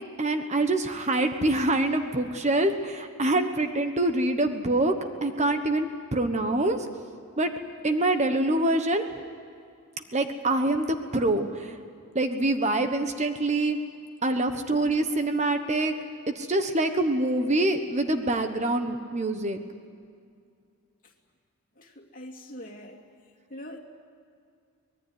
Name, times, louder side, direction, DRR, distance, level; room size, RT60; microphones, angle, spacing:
voice 1, 0.2-4.9 5.2-6.9 7.4-7.5 7.8-9.1 10.1-11.8 12.1-13.8 14.2-15.9 16.3-19.6, right 2 dB, 30° right, 7 dB, 1.2 m, -25 dB
voice 2, 21.8-23.0 23.5-23.8, left 1 dB, 40° left, 0 dB, 2.8 m, -43 dB
24.5 x 19.5 x 9.6 m, 2.2 s
head